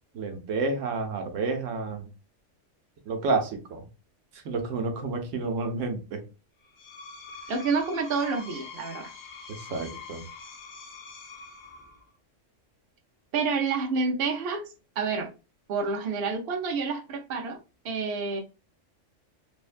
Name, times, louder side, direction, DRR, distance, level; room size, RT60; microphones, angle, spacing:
voice 1, 0.1-2.0 3.1-3.9 4.3-6.2 9.5-10.2, right 3 dB, 80° right, 5 dB, 1.0 m, -30 dB
Screech, 6.6-12.1, left 4 dB, 50° left, 0.6 m, -44 dB
voice 2, 7.5-9.1 13.3-14.6 15.0-15.3 15.7-17.6 17.8-18.4, right 4 dB, 60° right, 3 dB, 0.7 m, -28 dB
3.1 x 2.1 x 2.4 m, 0.31 s
omnidirectional pair, 1.3 m